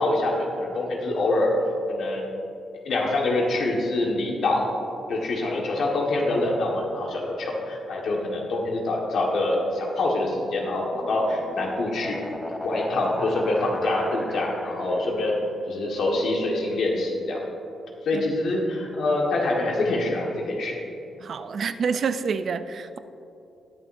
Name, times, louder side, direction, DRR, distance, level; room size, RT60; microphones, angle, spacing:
voice 1, 0.0-1.5 1.9-2.3 2.8-4.7 5.1-12.2 12.6-15.3 15.7-17.4 18.0-20.8, left 2 dB, 65° left, -1 dB, 1.5 m, -25 dB
sound 1, 10.4-15.1, left 1 dB, 10° left, 0.5 m, -37 dB
voice 2, 21.2-23.0, right 5 dB, 50° right, 11 dB, 0.4 m, -28 dB
20.0 x 7.3 x 2.6 m, 2.7 s
wide cardioid pair, 150°, 0 cm